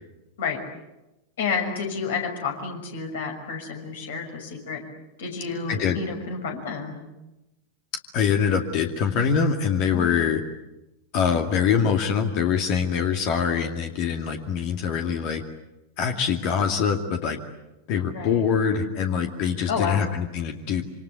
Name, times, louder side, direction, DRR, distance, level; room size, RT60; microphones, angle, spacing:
voice 1, 1.4-4.8 5.2-7.0 9.9-10.1 18.1-18.4 19.7-20.0, left 5 dB, 60° left, 3 dB, 6.1 m, -30 dB
voice 2, 8.1-10.4 11.1-15.4 16.0-17.4 17.9-20.8, left 7 dB, 45° left, 4 dB, 2.3 m, -24 dB
27.0 x 26.0 x 8.2 m, 0.97 s
figure-of-eight pair, 90°, 0 cm